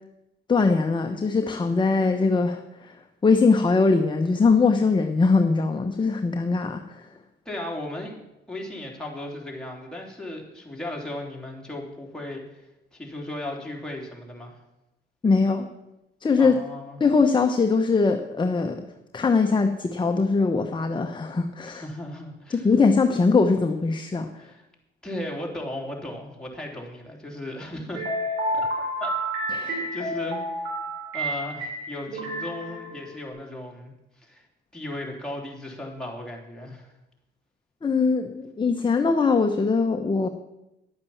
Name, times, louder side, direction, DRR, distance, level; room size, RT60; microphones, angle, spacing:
voice 1, 0.5-7.1 15.2-15.7 16.2-16.6 17.0-18.8 19.1-21.8 22.5-24.3 29.5-29.9 37.8-40.3, left 4 dB, 25° left, 5 dB, 0.9 m, -21 dB
voice 2, 7.4-8.2 8.5-14.6 16.4-17.1 21.6-22.7 24.4-24.6 25.0-28.0 28.5-28.7 29.0-29.2 29.9-30.4 31.1-34.4 34.7-36.9, left 1 dB, 5° left, -1 dB, 3.3 m, -36 dB
sound 1, 27.9-33.3, right 1 dB, 90° right, 3.4 m, -30 dB
11.0 x 8.7 x 7.2 m, 0.91 s
cardioid pair, 90°, 20 cm